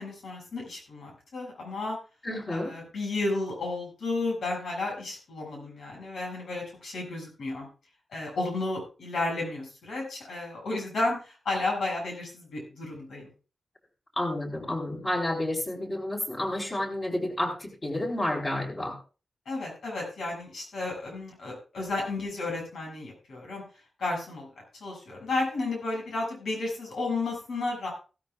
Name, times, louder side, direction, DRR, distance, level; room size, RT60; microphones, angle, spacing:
voice 1, 0.0-2.0 2.5-7.7 8.1-13.3 19.5-23.6 24.0-24.5 24.8-27.9, left 2 dB, 85° left, 1 dB, 6.9 m, -32 dB
voice 2, 2.2-2.7 14.2-19.0, left 1 dB, 30° left, 0 dB, 4.5 m, -30 dB
16.0 x 13.5 x 2.4 m, 0.34 s
wide cardioid pair, 115°, 0 cm